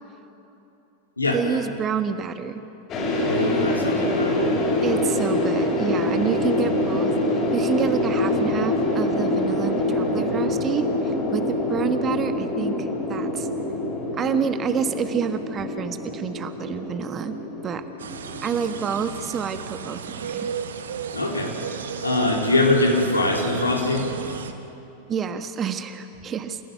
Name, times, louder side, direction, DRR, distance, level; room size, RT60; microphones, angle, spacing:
voice 1, 1.3-2.6 4.8-13.5 14.1-17.3 17.6-17.9 18.4-20.5 25.1-26.6, right 7 dB, 25° right, 9 dB, 1.4 m, -28 dB
sound 1, 2.9-19.0, left 1 dB, 30° left, 6.4 m, -25 dB
voice 2, 3.2-4.5 21.1-21.5 22.0-24.0, left 2 dB, 80° left, 0 dB, 3.9 m, -22 dB
sound 2, 18.0-24.5, right 7 dB, 65° right, 1.3 m, -33 dB
29.5 x 16.5 x 9.3 m, 3.0 s
figure-of-eight pair, 90°, 0 cm